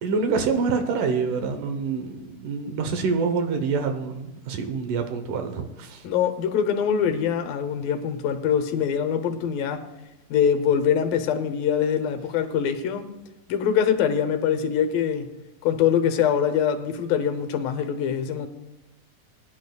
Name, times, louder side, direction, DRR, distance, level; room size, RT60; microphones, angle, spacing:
voice 1, 0.0-6.0, right 5 dB, 70° right, 2.3 m, -26 dB
voice 2, 6.0-9.8 10.3-13.1 13.5-15.3 15.6-18.5, left 8 dB, 80° left, 2.6 m, -23 dB
22.0 x 10.5 x 2.3 m
omnidirectional pair, 4.2 m